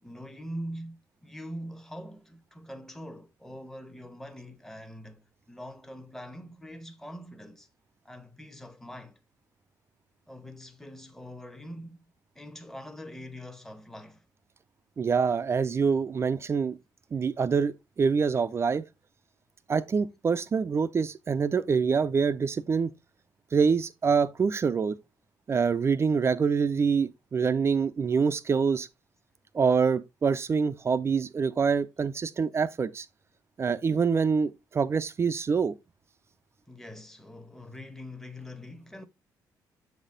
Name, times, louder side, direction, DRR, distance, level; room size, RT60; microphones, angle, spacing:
voice 1, 0.0-7.7 8.0-9.2 10.3-12.0 12.3-14.2 36.7-39.1, equal, 5° left, 1.0 m, -43 dB
voice 2, 15.0-16.8 17.1-18.8 19.7-22.9 23.5-25.0 25.5-28.9 29.5-33.1 33.6-35.7, right 5 dB, 35° right, 0.5 m, -25 dB
7.1 x 4.1 x 3.8 m
cardioid pair, 90°, 8 cm